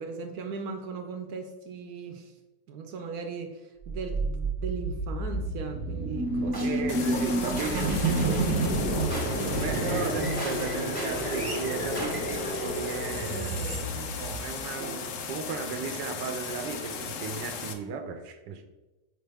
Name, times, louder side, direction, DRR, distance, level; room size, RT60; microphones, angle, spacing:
voice 1, 0.0-2.3 2.7-6.9 8.3-8.6 13.3-14.2 14.8-14.9, right 5 dB, 70° right, 5 dB, 1.0 m, -38 dB
sound 1, 3.8-14.9, right 2 dB, 15° right, 0.8 m, -29 dB
voice 2, 6.6-9.2 9.5-13.9 14.2-18.7, right 5 dB, 85° right, 7 dB, 1.3 m, -36 dB
sound 2, 6.9-17.7, left 6 dB, 65° left, 0.8 m, -37 dB
6.5 x 4.6 x 3.4 m, 1.1 s
omnidirectional pair, 1.9 m